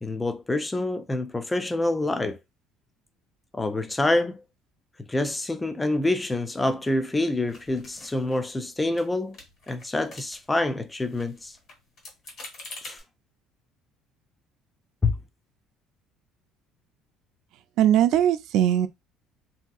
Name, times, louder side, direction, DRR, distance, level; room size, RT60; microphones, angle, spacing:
voice 1, 0.0-2.4 3.5-4.4 5.1-9.4 9.7-11.6 12.8-13.0 15.0-15.1, left 2 dB, 10° left, 0.4 m, -26 dB
sound 1, 7.5-8.7 8.9-9.1 9.3-10.6 10.9-13.0, left 2 dB, 40° left, 1.5 m, -45 dB
voice 2, 17.8-18.9, right 10 dB, 60° right, 0.4 m, -20 dB
3.4 x 2.7 x 2.3 m
cardioid pair, 165°, 0 cm